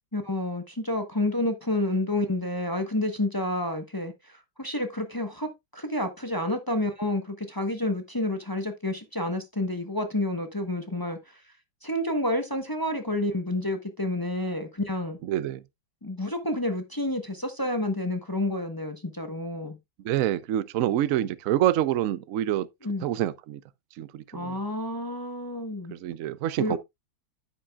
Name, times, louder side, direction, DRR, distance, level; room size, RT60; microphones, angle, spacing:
voice 1, 0.1-11.4 11.8-15.2 16.0-19.8 22.8-23.1 24.3-25.9 26.6-26.7, left 1 dB, 20° left, 0.7 m, -29 dB
voice 2, 15.2-15.6 20.0-22.7 23.0-23.6 24.0-24.6 25.9-26.8, right 12 dB, 90° right, 0.7 m, -26 dB
9.5 x 8.7 x 2.3 m
omnidirectional pair, 2.1 m